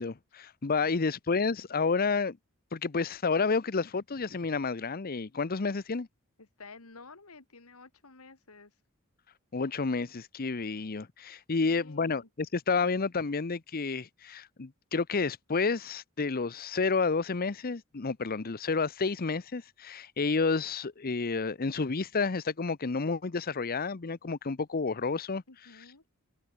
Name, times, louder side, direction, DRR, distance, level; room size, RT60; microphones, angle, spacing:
voice 1, 0.0-2.4 2.7-6.1 9.5-25.4 25.7-26.1, left 4 dB, 45° left, 0.7 m, -30 dB
voice 2, 6.4-8.8 11.6-12.3 25.5-26.0, left 3 dB, 85° left, 2.3 m, -52 dB
head